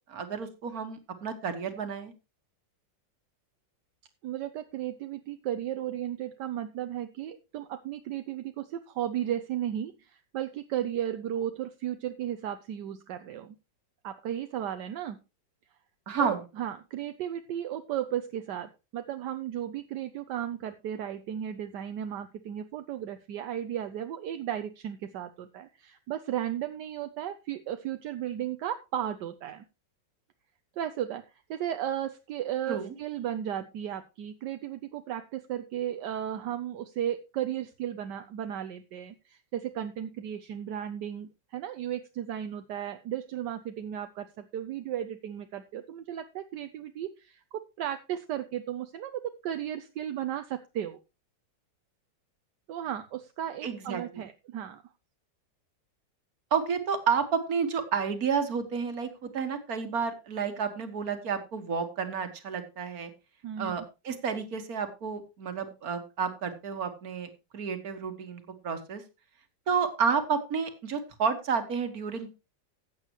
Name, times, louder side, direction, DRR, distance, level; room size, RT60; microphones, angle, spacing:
voice 1, 0.1-2.1 16.1-16.4 32.7-32.9 53.6-54.3 56.5-63.1 63.6-69.0 69.7-72.3, right 6 dB, 55° right, 8 dB, 2.0 m, -31 dB
voice 2, 4.2-13.5 14.0-15.2 16.2-29.6 30.8-51.0 52.7-54.8 63.4-63.8, right 10 dB, 75° right, 9 dB, 1.3 m, -35 dB
14.5 x 8.6 x 3.0 m, 0.27 s
omnidirectional pair, 1.9 m